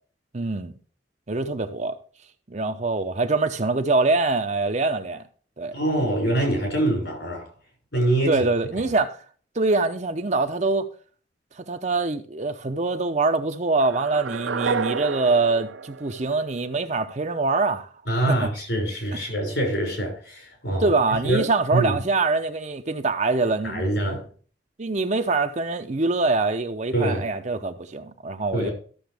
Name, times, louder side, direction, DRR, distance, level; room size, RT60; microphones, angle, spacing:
voice 1, 0.3-0.7 1.3-2.0 2.5-5.2 5.6-5.7 8.3-9.2 9.5-10.9 11.6-17.9 18.3-18.5 19.1-19.2 20.8-23.9 24.8-28.7, right 3 dB, 40° right, 0.7 m, -24 dB
voice 2, 5.7-7.5 7.9-8.4 18.1-21.4 21.7-22.0 23.6-24.2 26.9-27.2 28.5-28.7, right 1 dB, 65° left, 6.2 m, -24 dB
sound 1, 13.8-16.9, right 5 dB, 85° right, 0.6 m, -30 dB
13.5 x 7.1 x 3.4 m
head